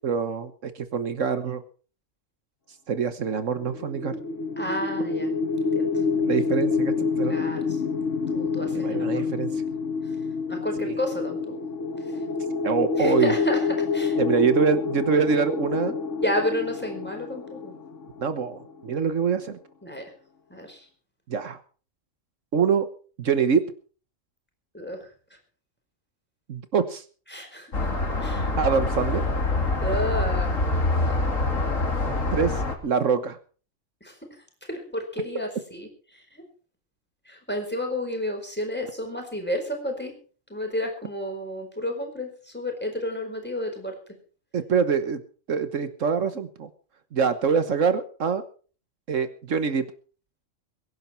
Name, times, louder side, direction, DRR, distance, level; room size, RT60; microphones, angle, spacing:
voice 1, 0.0-1.6 2.9-4.1 6.2-7.4 8.7-9.5 10.8-10.9 12.6-13.3 14.2-15.9 18.2-19.6 21.3-21.6 22.5-22.9 23.2-23.6 26.5-27.0 28.6-29.2 32.3-33.4 44.5-45.2 45.5-46.7 47.1-48.4 49.1-49.8, right 6 dB, 75° right, 10 dB, 1.5 m, -24 dB
sound 1, 3.6-18.6, left 5 dB, 70° left, 1.6 m, -27 dB
voice 2, 4.6-5.9 7.3-7.8 8.3-9.2 10.0-10.1 10.5-11.6 12.1-12.2 13.0-14.2 16.2-17.8 19.8-20.1 20.5-20.9 24.7-25.1 27.3-27.9 28.2-28.5 29.8-30.6 31.0-31.2 34.0-34.2 34.7-36.4 37.3-40.1 40.5-44.0, left 1 dB, 10° left, 3 dB, 4.7 m, -31 dB
sound 2, 27.7-32.8, left 2 dB, 90° left, 3.3 m, -25 dB
22.5 x 11.0 x 4.5 m, 0.40 s
omnidirectional pair, 1.3 m